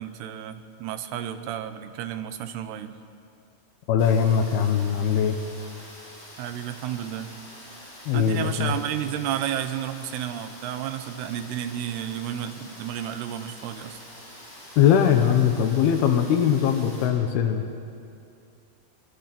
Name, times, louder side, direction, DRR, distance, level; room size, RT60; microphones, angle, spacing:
voice 1, 0.0-2.9 6.4-7.3 8.1-14.0, right 10 dB, 90° right, 9 dB, 3.1 m, -32 dB
voice 2, 3.9-5.4 8.1-8.7 14.8-17.6, left 8 dB, 80° left, 6 dB, 3.1 m, -21 dB
Rain, 4.0-17.1, left 1 dB, 25° left, 8.2 m, -45 dB
24.5 x 22.5 x 6.1 m, 2.5 s
omnidirectional pair, 4.5 m